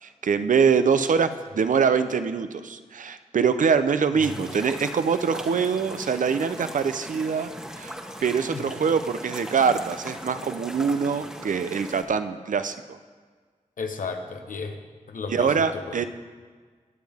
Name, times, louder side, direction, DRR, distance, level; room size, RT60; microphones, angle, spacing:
voice 1, 0.0-7.9 8.2-13.0 15.3-16.1, right 6 dB, 75° right, 10 dB, 0.6 m, -24 dB
sound 1, 4.2-12.0, equal, 5° right, 1.2 m, -39 dB
voice 2, 8.5-8.9 13.8-14.8 15.1-16.1, left 4 dB, 85° left, 5 dB, 1.0 m, -34 dB
20.5 x 7.3 x 3.5 m, 1.5 s
cardioid pair, 50°, 13 cm